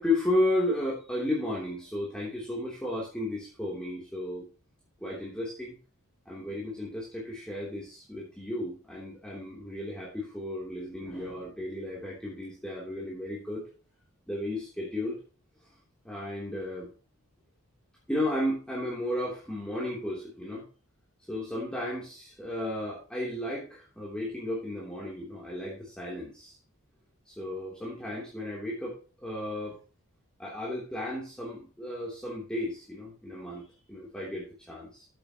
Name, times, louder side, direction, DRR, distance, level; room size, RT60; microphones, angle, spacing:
voice 1, 0.0-4.4 5.0-5.8 6.2-13.6 14.3-15.2 16.0-16.9 18.1-20.6 21.3-26.6 27.3-29.0 29.2-29.8 30.4-35.1, left 1 dB, 5° left, -6 dB, 3.2 m, -33 dB
14.5 x 8.1 x 3.0 m, 0.35 s
head